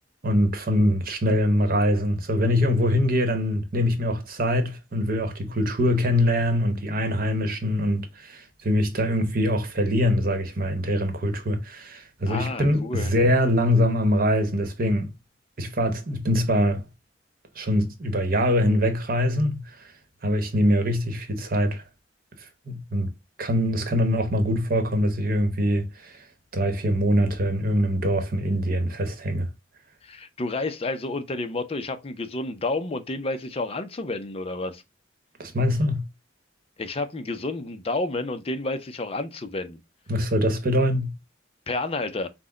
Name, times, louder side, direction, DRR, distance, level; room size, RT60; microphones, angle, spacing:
voice 1, 0.2-15.1 15.6-16.8 17.5-19.9 20.2-21.8 22.4-23.1 23.4-26.2 26.5-29.5 35.4-36.0 40.1-41.1, equal, 50° right, 1.0 m, -23 dB
voice 2, 12.3-13.1 30.0-34.8 36.8-39.8 41.7-42.3, left 2 dB, 30° left, 0.5 m, -30 dB
5.9 x 2.1 x 3.8 m
head